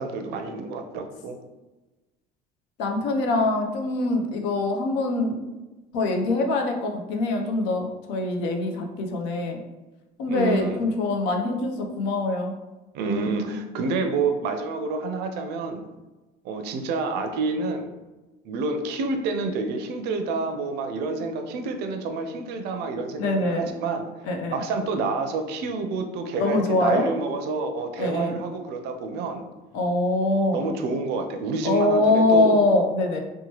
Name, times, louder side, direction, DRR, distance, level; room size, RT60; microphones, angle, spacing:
voice 1, 0.0-1.4 10.3-10.8 12.9-15.8 16.4-17.9 18.4-24.0 24.5-29.4 30.5-32.6, right 3 dB, 60° right, 6 dB, 0.5 m, -28 dB
voice 2, 2.8-5.4 5.9-9.6 10.2-12.5 23.2-23.6 24.3-24.6 26.4-27.1 28.0-28.4 29.7-30.6 31.6-33.2, left 2 dB, 70° left, 3 dB, 0.6 m, -23 dB
2.9 x 2.2 x 2.9 m, 1.1 s
cardioid pair, 130°, 19 cm